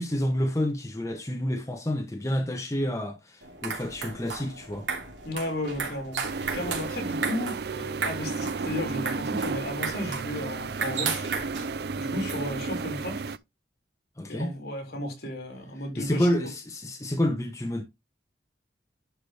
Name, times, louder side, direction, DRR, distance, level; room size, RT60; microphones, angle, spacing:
voice 1, 0.0-4.9 14.2-14.5 16.0-17.8, equal, 20° left, 1.0 m, -29 dB
sound 1, 3.4-12.9, right 5 dB, 85° right, 3.0 m, -35 dB
voice 2, 5.2-11.3 11.9-13.3 14.3-16.3, left 1 dB, 60° left, 3.9 m, -34 dB
sound 2, 6.2-13.4, right 4 dB, 60° right, 0.5 m, -33 dB
10.5 x 5.0 x 3.4 m
head